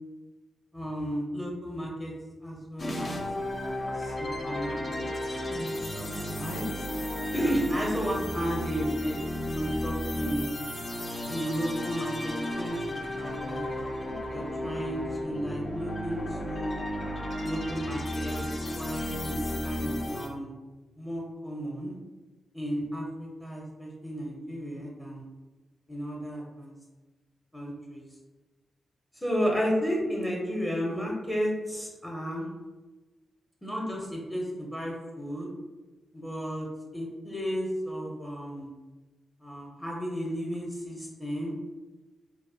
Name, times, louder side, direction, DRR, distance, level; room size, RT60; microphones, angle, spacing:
voice 1, 0.7-2.1 2.4-3.2 4.0-6.7 7.3-9.2 9.5-10.5 11.3-12.8 13.2-13.6 14.3-16.8 17.4-20.5 21.0-22.0 22.5-25.2 25.9-26.7 27.5-28.0 29.2-32.5 33.6-35.5 36.1-36.7 36.9-38.7 39.4-41.5, equal, 10° left, -3 dB, 0.6 m, -33 dB
sound 1, 2.8-20.3, left 1 dB, 50° left, 0.4 m, -33 dB
2.5 x 2.0 x 2.5 m, 1.2 s
cardioid pair, 60°, 0 cm